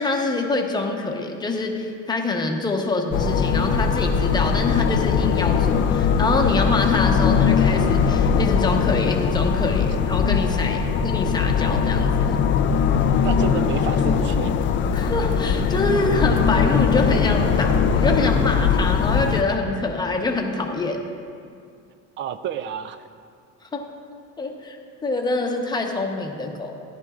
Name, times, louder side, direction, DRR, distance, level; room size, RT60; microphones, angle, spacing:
voice 1, 0.0-12.4 14.9-21.0 23.7-23.8 24.4-24.8 25.0-26.8, left 3 dB, 10° left, 2 dB, 0.8 m, -25 dB
sound 1, 3.1-19.4, left 6 dB, 35° left, 0.4 m, -20 dB
voice 2, 13.2-14.5 22.2-23.0, right 9 dB, 35° right, 12 dB, 0.4 m, -30 dB
14.0 x 10.5 x 2.4 m, 2.3 s
cardioid pair, 140°, 35 cm